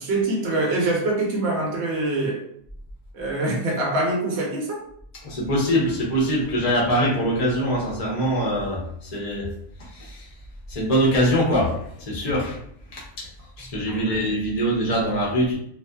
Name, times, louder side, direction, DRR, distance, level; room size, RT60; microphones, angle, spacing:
voice 1, 0.0-2.4 3.1-4.8 13.9-14.2, right 2 dB, 60° right, -1 dB, 0.9 m, -24 dB
voice 2, 5.2-9.5 9.8-10.3 10.7-12.6 12.9-13.3 13.6-15.6, equal, 35° left, -4 dB, 0.7 m, -23 dB
2.5 x 2.4 x 2.2 m, 0.67 s
omnidirectional pair, 1.4 m